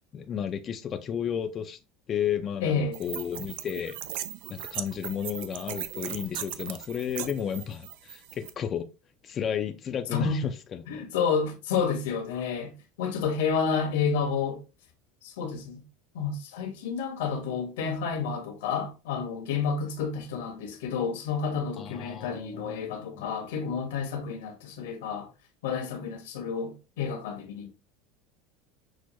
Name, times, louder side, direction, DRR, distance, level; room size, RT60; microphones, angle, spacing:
voice 1, 0.1-1.8 2.1-4.0 4.5-8.9 9.2-11.1 21.8-23.3, left 8 dB, 35° left, 0.4 m, -33 dB
voice 2, 2.6-3.0 10.1-10.4 10.9-12.7 13.0-14.6 15.2-15.8 16.1-25.3 25.6-27.7, left 6 dB, 85° left, 1.2 m, -30 dB
sound 1, 2.9-8.5, right 12 dB, 75° right, 0.5 m, -38 dB
6.2 x 2.2 x 3.0 m
supercardioid pair, 125°, 0 cm